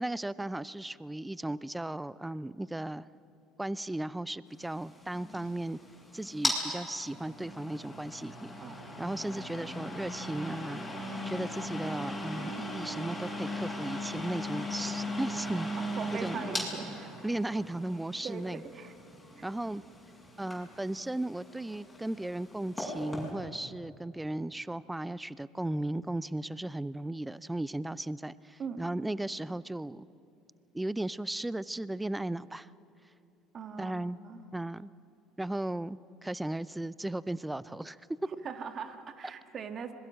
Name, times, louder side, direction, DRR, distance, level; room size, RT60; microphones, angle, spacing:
voice 1, 0.0-3.0 3.6-5.8 6.1-8.5 9.0-15.7 16.2-16.5 17.2-18.6 19.4-19.8 20.4-30.1 30.7-32.7 33.8-34.2 34.5-34.9 35.4-38.0, right 1 dB, 10° right, 19 dB, 0.5 m, -36 dB
sound 1, 4.6-23.3, left 1 dB, 10° left, 8.0 m, -38 dB
voice 2, 15.8-17.1 18.2-18.9 19.4-19.5 28.6-28.8 33.5-34.4 38.4-39.9, right 6 dB, 45° right, 8 dB, 1.8 m, -41 dB
26.0 x 21.0 x 6.4 m, 2.7 s
hypercardioid pair, 70°, 0 cm